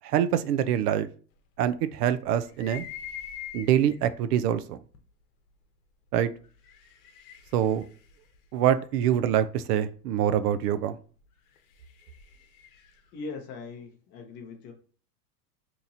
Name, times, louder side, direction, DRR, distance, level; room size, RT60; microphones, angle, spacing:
voice 1, 0.0-1.1 1.6-2.8 3.5-4.8 6.1-6.3 7.5-7.8 8.5-11.0, right 10 dB, 70° right, 13 dB, 0.5 m, -25 dB
sound 1, 2.4-4.1 4.9-5.0 6.4-9.3 11.3-13.1, left 9 dB, 60° left, 0.9 m, -44 dB
voice 2, 13.1-14.7, left 4 dB, 25° left, 3 dB, 0.5 m, -40 dB
2.9 x 2.5 x 3.9 m, 0.40 s
supercardioid pair, 140°, 49 cm